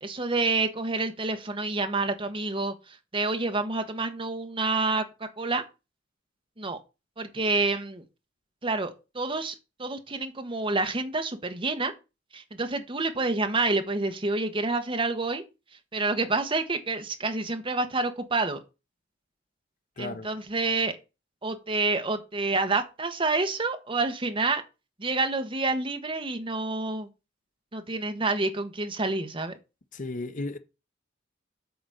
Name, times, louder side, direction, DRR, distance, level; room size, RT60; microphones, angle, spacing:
voice 1, 0.0-5.6 6.6-6.8 7.2-8.0 8.6-11.9 12.3-15.4 15.9-18.6 20.0-21.0 21.4-24.6 25.0-27.1 27.7-29.6, right 3 dB, 25° right, 1.1 m, -28 dB
voice 2, 20.0-20.3 29.9-30.6, left 2 dB, 45° left, 0.7 m, -34 dB
8.1 x 4.0 x 6.3 m
head